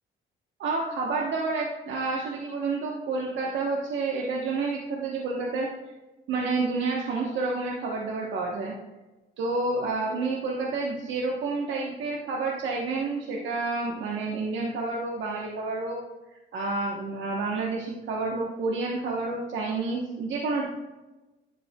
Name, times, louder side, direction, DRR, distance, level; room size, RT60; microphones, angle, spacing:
voice 1, 0.6-5.7 6.3-8.7 9.4-16.0 16.5-20.7, right 3 dB, 75° right, -2 dB, 1.1 m, -29 dB
10.0 x 6.9 x 2.3 m, 1.1 s
cardioid pair, 90°, 20 cm